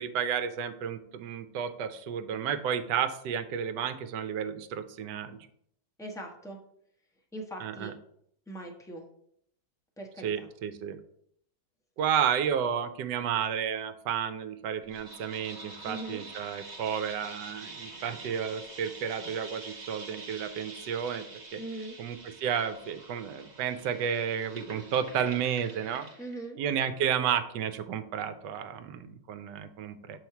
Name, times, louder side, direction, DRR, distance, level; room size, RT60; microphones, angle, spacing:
voice 1, 0.0-5.4 7.6-7.9 10.2-11.0 12.0-21.3 21.5-21.6 22.0-26.1 26.6-30.2, right 8 dB, 75° right, 10 dB, 1.2 m, -32 dB
voice 2, 6.0-6.6 7.3-7.9 8.5-9.0 10.0-10.5 15.8-16.2 21.6-22.0 26.2-26.6, right 1 dB, 5° left, 0 dB, 0.5 m, -40 dB
sound 1, 14.9-26.4, right 3 dB, 30° right, 1.1 m, -46 dB
7.0 x 3.2 x 5.7 m, 0.69 s
omnidirectional pair, 1.9 m